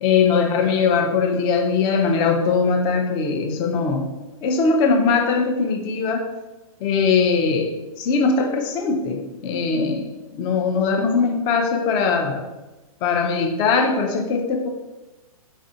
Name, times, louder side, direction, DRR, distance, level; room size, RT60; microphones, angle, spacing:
voice 1, 0.0-4.1 4.4-6.3 6.8-10.1 10.3-12.4 13.0-14.7, left 5 dB, 25° left, 3 dB, 0.4 m, -20 dB
4.2 x 2.5 x 2.6 m, 1.1 s
hypercardioid pair, 120°, 19 cm